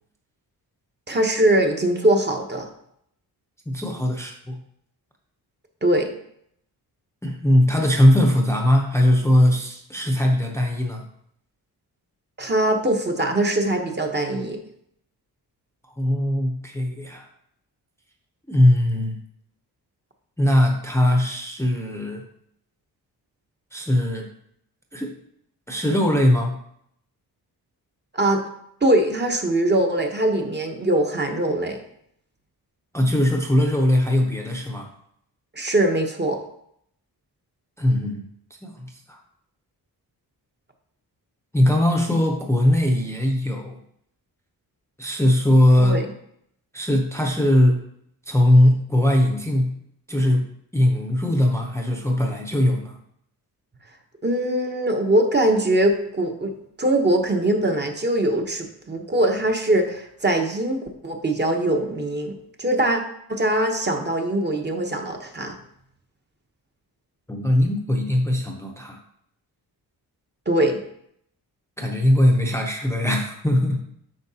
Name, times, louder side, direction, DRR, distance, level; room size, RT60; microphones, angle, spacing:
voice 1, 1.1-2.7 5.8-6.1 12.4-14.6 28.1-28.4 28.8-31.8 35.5-36.4 45.8-46.0 54.2-56.5 56.8-63.0 63.3-65.6 70.5-70.8, right 1 dB, 25° right, 3 dB, 0.9 m, -22 dB
voice 2, 3.7-4.6 7.2-11.0 16.0-17.3 18.5-19.2 20.4-22.2 23.7-24.3 24.9-25.1 25.7-26.6 32.9-34.9 37.8-38.2 38.6-39.2 41.5-43.8 45.0-46.0 46.7-47.8 48.3-49.7 50.1-53.0 67.3-69.0 71.8-73.8, left 1 dB, 5° left, 1 dB, 0.7 m, -20 dB
8.6 x 5.8 x 2.8 m, 0.70 s
wide cardioid pair, 135°, 39 cm